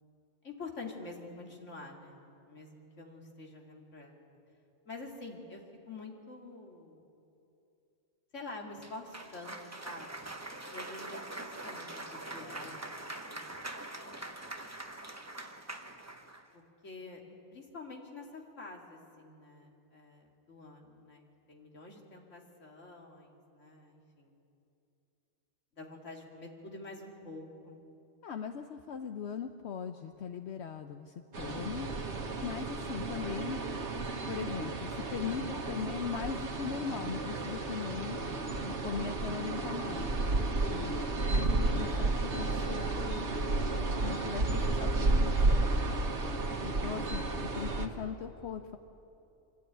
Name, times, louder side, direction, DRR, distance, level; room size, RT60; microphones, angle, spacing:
voice 1, 0.4-2.2 2.5-4.2 4.9-7.0 8.3-9.6 9.8-10.3 10.7-12.7 13.2-13.4 16.5-21.2 21.5-24.3 25.8-27.8 35.2-35.5 41.9-42.1 44.0-44.3, left 3 dB, 90° left, 0 dB, 2.6 m, -47 dB
Cheering / Applause, 8.8-16.5, right 2 dB, 15° right, 0.9 m, -43 dB
voice 2, 28.2-31.9 32.4-33.6 34.3-35.4 35.7-38.2 38.7-40.1 40.7-41.0 41.3-43.6 44.0-45.5 46.6-47.2 47.5-48.8, left 7 dB, 65° left, 6 dB, 1.0 m, -39 dB
sound 1, 31.3-47.9, right 2 dB, 70° right, 1.7 m, -32 dB
24.5 x 12.5 x 9.1 m, 2.8 s
omnidirectional pair, 1.2 m